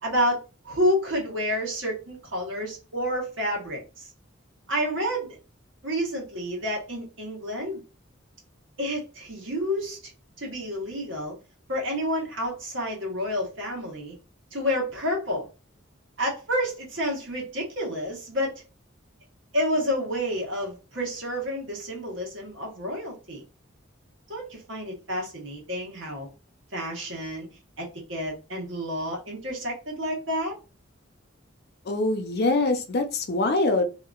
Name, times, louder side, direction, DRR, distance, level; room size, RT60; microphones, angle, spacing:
voice 1, 0.0-4.1 4.7-5.4 5.8-7.8 8.8-10.1 10.4-11.4 11.7-14.2 14.5-15.5 16.2-18.5 19.5-23.4 24.3-26.3 26.7-27.5 27.8-30.6, equal, 75° right, 1.3 m, -29 dB
voice 2, 31.9-33.8, left 2 dB, 55° left, 0.5 m, -24 dB
2.8 x 2.6 x 2.3 m
head